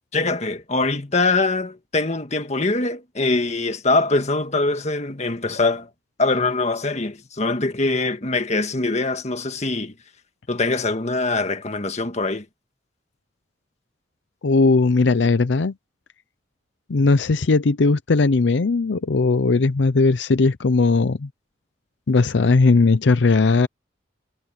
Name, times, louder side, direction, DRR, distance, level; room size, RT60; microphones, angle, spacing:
voice 1, 0.1-5.9 6.2-9.9 10.5-12.5, left 3 dB, 40° left, 1.6 m, -23 dB
voice 2, 14.4-15.7 16.9-21.3 22.1-23.7, left 3 dB, 75° left, 0.6 m, -18 dB
head